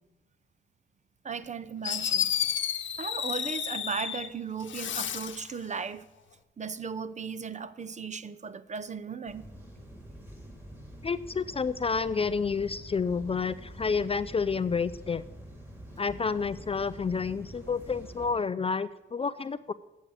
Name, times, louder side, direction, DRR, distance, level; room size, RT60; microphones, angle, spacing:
voice 1, 1.2-2.3 3.0-6.0 6.6-9.4, right 5 dB, 35° right, 0.7 m, -36 dB
Fireworks, 1.4-1.5 1.8-4.3 4.6-5.5, left 9 dB, 65° left, 0.9 m, -31 dB
sound 1, 9.3-18.3, right 1 dB, 10° right, 3.5 m, -46 dB
voice 2, 11.0-15.2 16.0-19.7, left 5 dB, 30° left, 0.4 m, -29 dB
8.1 x 7.3 x 8.3 m
cardioid pair, 75°, 21 cm